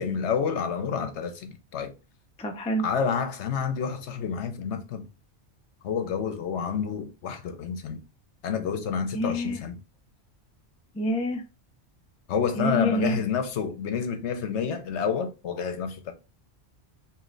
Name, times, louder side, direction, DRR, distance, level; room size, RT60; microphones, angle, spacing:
voice 1, 0.0-1.9 2.8-5.1 5.8-8.0 8.4-9.8 12.3-16.1, left 6 dB, 75° left, 1.0 m, -29 dB
voice 2, 2.4-2.9 9.1-9.6 10.9-11.4 12.6-13.3, equal, 10° left, 0.3 m, -27 dB
3.1 x 2.8 x 3.8 m
omnidirectional pair, 1.2 m